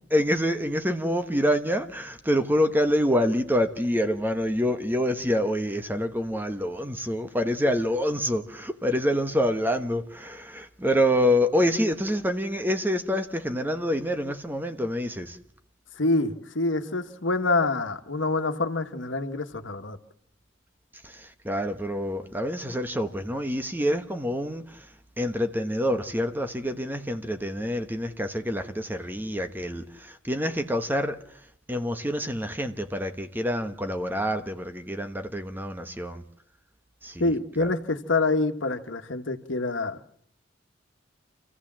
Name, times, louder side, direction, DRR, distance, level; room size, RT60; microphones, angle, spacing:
voice 1, 0.1-15.4 21.0-24.8 25.2-31.2 31.7-36.2 37.0-37.3 37.6-37.7, equal, 10° right, 1.2 m, -26 dB
voice 2, 16.0-20.0 37.2-40.1, left 3 dB, 80° left, 1.5 m, -26 dB
27.5 x 15.0 x 7.5 m
head